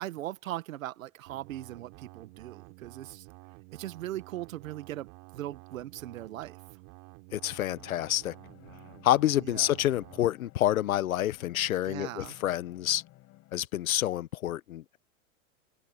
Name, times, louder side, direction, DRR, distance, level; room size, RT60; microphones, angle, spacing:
voice 1, 0.0-3.3 3.7-6.6 9.4-9.8 11.8-12.4, right 14 dB, 75° right, 1.8 m, -39 dB
sound 1, 1.3-10.3, right 27 dB, 45° right, 3.4 m, -51 dB
voice 2, 7.3-8.3 9.0-13.0 13.5-15.0, left 13 dB, 85° left, 1.2 m, -28 dB
sound 2, 7.7-13.6, left 17 dB, 35° left, 6.0 m, -56 dB
open air
hypercardioid pair, 140°, 41 cm